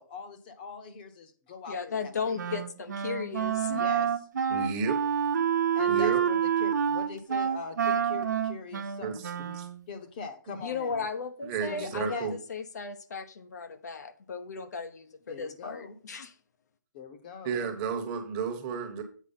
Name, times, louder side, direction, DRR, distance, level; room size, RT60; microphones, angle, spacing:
voice 1, 0.0-2.4 3.7-4.1 5.8-9.2 9.9-11.1 11.7-12.3 15.3-16.0 16.9-17.6, left 5 dB, 30° left, 1.0 m, -42 dB
voice 2, 1.7-3.8 10.6-16.3, left 5 dB, 60° left, 0.9 m, -36 dB
Wind instrument woodwind instrument, 2.4-9.8, right 8 dB, 65° right, 1.1 m, -28 dB
voice 3, 4.5-5.0 5.9-6.2 9.0-9.7 11.4-12.3 17.4-19.0, right 5 dB, 20° right, 1.1 m, -32 dB
8.3 x 4.8 x 5.7 m
hypercardioid pair, 165°, 10 cm